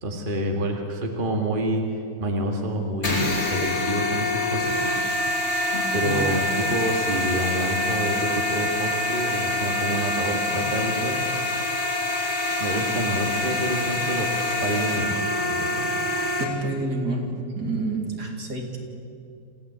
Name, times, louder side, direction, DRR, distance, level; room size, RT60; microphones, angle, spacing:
voice 1, 0.0-1.8 2.2-4.8 5.9-11.2 12.6-14.3 14.6-15.1 15.5-15.9, right 1 dB, 30° right, 2 dB, 2.1 m, -27 dB
sound 1, 3.0-16.4, left 2 dB, 35° left, 3.4 m, -26 dB
voice 2, 16.4-17.3 17.6-18.8, right 2 dB, 60° right, 1 dB, 3.5 m, -28 dB
27.0 x 15.5 x 8.7 m, 2.5 s
omnidirectional pair, 1.9 m